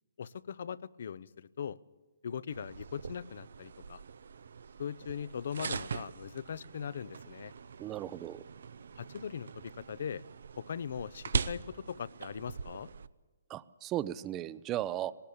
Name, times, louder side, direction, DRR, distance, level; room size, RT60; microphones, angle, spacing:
voice 1, 0.2-1.8 2.2-4.0 4.8-7.5 9.0-10.2 10.6-12.9, left 7 dB, 65° left, 20 dB, 0.6 m, -40 dB
sound 1, 2.5-13.1, right 5 dB, 70° right, 0.6 m, -41 dB
voice 2, 7.8-8.4 13.5-15.1, right 13 dB, 20° right, 18 dB, 0.6 m, -36 dB
18.5 x 18.5 x 8.7 m, 1.3 s
hypercardioid pair, 145°, 0 cm